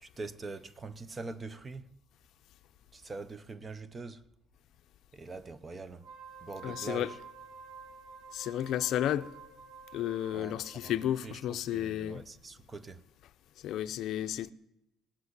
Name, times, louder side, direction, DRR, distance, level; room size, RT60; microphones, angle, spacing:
voice 1, 0.0-1.9 2.9-4.2 5.1-6.1 6.4-7.2 10.3-10.9 11.2-13.0, right 3 dB, 20° right, 0.7 m, -43 dB
Wind instrument woodwind instrument, 5.9-11.2, right 5 dB, 85° right, 6.0 m, -50 dB
voice 2, 6.6-7.1 8.3-9.3 9.9-12.2 13.6-14.5, left 11 dB, 55° left, 0.6 m, -32 dB
18.5 x 8.3 x 8.0 m
cardioid pair, 155°, 0 cm